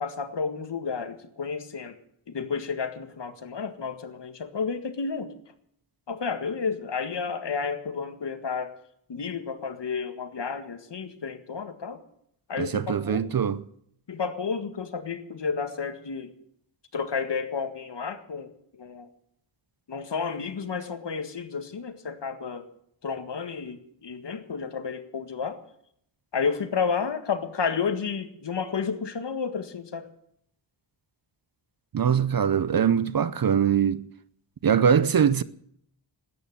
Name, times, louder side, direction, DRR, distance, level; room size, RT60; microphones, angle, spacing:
voice 1, 0.0-2.0 2.3-5.3 6.1-8.8 9.1-12.0 12.5-13.2 14.1-16.3 16.9-18.5 18.8-19.1 19.9-22.7 23.0-25.6 26.3-30.1, left 5 dB, 60° left, 1.9 m, -31 dB
voice 2, 12.6-13.6 31.9-34.0 34.6-35.4, right 8 dB, 45° right, 0.7 m, -22 dB
13.0 x 9.5 x 10.0 m
wide cardioid pair, 100°, 48 cm